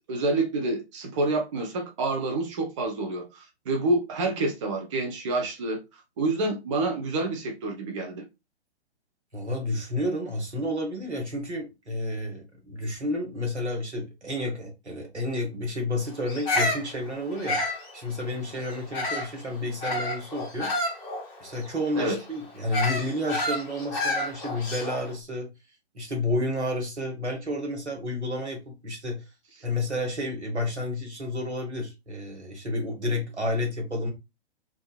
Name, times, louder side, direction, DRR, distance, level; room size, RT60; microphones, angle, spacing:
voice 1, 0.1-8.2 22.0-22.2, right 2 dB, 30° right, 0.4 m, -28 dB
voice 2, 9.3-20.7 21.4-25.5 25.9-29.2 29.6-34.1, left 1 dB, 85° right, 1.2 m, -30 dB
Bird vocalization bird call bird song, 16.3-19.4 19.8-25.1, left 1 dB, 15° left, 0.6 m, -30 dB
2.4 x 2.4 x 2.2 m
figure-of-eight pair, 120°, 33 cm